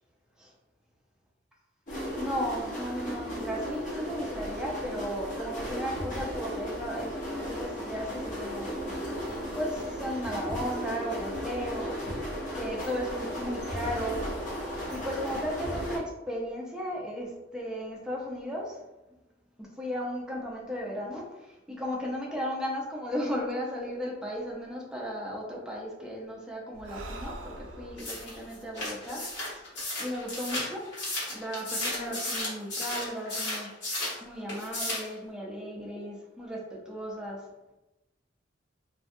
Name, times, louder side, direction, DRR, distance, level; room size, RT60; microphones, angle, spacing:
sound 1, 1.9-16.0, equal, 45° left, 0.6 m, -35 dB
voice 1, 2.2-9.0 9.5-12.2 12.5-14.3 14.9-18.8 19.6-30.8 31.3-33.7 34.2-37.4, equal, 5° right, -3 dB, 0.5 m, -35 dB
Breathing, 26.7-30.3, right 2 dB, 85° right, 0.3 m, -45 dB
sound 2, 28.0-34.2 34.5-35.1, left 1 dB, 65° left, 1.1 m, -34 dB
2.5 x 2.2 x 2.5 m, 0.98 s
head